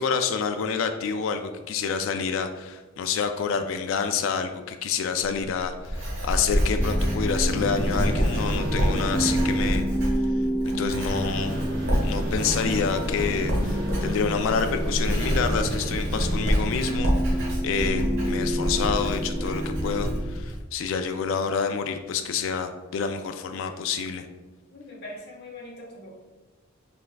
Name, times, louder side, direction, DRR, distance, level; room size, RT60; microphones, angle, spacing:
voice 1, 0.0-9.8 10.7-11.6 12.0-24.3, left 6 dB, 70° left, 7 dB, 0.3 m, -28 dB
Writing, 5.2-20.6, equal, 65° right, 1.1 m, -28 dB
sound 1, 6.7-20.3, equal, 25° left, 0.8 m, -30 dB
sound 2, 7.5-9.7 11.0-16.6, right 1 dB, 50° right, 1.1 m, -33 dB
voice 2, 24.7-26.2, left 1 dB, 50° left, -3 dB, 1.2 m, -42 dB
5.4 x 3.5 x 2.2 m, 1.2 s
head